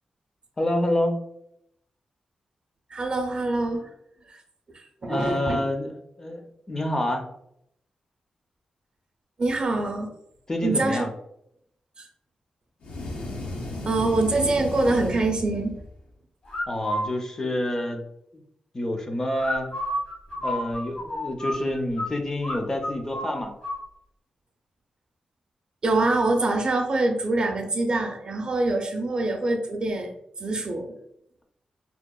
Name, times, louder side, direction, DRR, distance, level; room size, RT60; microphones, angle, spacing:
voice 1, 0.6-1.2 5.0-5.9 6.2-6.4 6.7-7.3 10.5-11.1 16.7-18.0 18.7-19.7 20.4-23.5, left 1 dB, 25° left, 4 dB, 0.4 m, -27 dB
voice 2, 2.9-3.9 4.3-4.4 4.7-5.6 9.4-10.1 10.6-11.0 12.0-12.1 13.8-15.8 25.8-30.1 30.4-30.9, right 2 dB, 45° right, 4 dB, 0.4 m, -25 dB
sound 1, 12.8-16.0, left 1 dB, 70° left, 0.5 m, -34 dB
sound 2, 16.5-17.1 19.4-22.1 22.4-22.6 22.8-23.8, left 1 dB, 55° left, 1.0 m, -30 dB
2.8 x 2.1 x 2.2 m, 0.76 s
cardioid pair, 75°, 2 cm